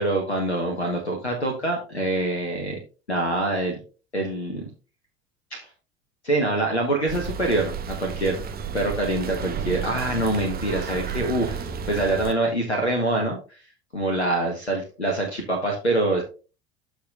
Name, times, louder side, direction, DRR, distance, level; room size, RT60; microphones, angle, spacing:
voice 1, 0.0-2.8 3.1-3.8 4.1-4.6 5.5-5.6 6.2-8.4 8.7-11.6 11.9-13.6 13.9-16.2, right 2 dB, 85° left, 3 dB, 1.4 m, -25 dB
sound 1, 7.1-12.3, right 6 dB, 30° right, 1.2 m, -32 dB
13.0 x 5.1 x 2.5 m, 0.33 s
figure-of-eight pair, 70°, 32 cm